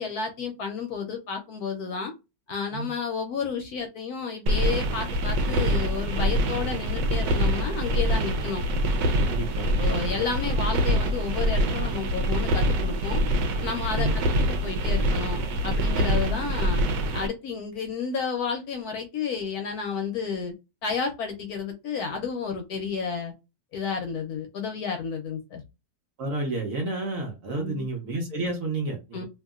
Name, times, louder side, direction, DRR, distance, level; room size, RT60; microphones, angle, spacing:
voice 1, 0.0-2.1 2.5-8.6 9.8-13.2 13.6-14.1 14.4-16.8 17.1-20.5 20.8-23.3 23.7-25.6 27.5-27.8 29.1-29.2, left 5 dB, 70° left, 4 dB, 1.0 m, -31 dB
sound 1, 4.5-17.3, equal, 85° right, 1.3 m, -25 dB
voice 2, 9.3-9.7 14.0-14.2 26.2-29.2, right 2 dB, 55° right, 2 dB, 1.1 m, -30 dB
2.8 x 2.7 x 2.3 m, 0.25 s
omnidirectional pair, 1.9 m